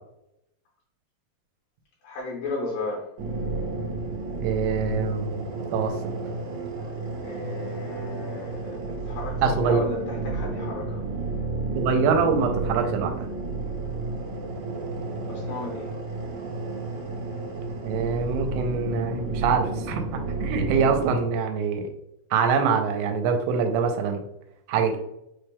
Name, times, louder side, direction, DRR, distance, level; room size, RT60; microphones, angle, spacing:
voice 1, 2.0-3.1 7.2-11.0 15.3-15.9, left 2 dB, 75° left, -2 dB, 2.1 m, -34 dB
sound 1, 3.2-21.2, right 3 dB, 70° right, 1.9 m, -31 dB
voice 2, 4.4-5.5 5.7-5.9 9.4-9.8 11.8-13.3 17.8-20.0 20.4-21.9 22.3-24.2 24.7-25.0, right 5 dB, 85° right, 4 dB, 2.6 m, -24 dB
5.7 x 3.4 x 2.2 m, 0.82 s
omnidirectional pair, 4.7 m